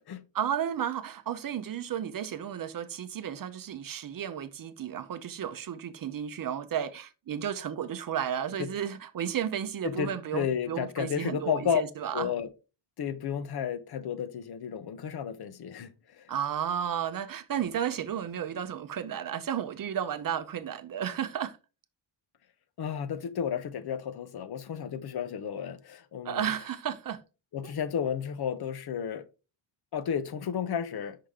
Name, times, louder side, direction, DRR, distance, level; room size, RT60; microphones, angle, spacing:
voice 1, 0.3-12.3 16.3-21.6 26.2-27.2 27.6-27.7, right 9 dB, 50° right, 0.6 m, -33 dB
voice 2, 9.8-11.8 12.1-12.5 13.0-16.3 22.8-26.5 27.5-29.2 29.9-31.2, left 8 dB, 55° left, 0.7 m, -32 dB
5.7 x 4.9 x 3.5 m
wide cardioid pair, 160°, 46 cm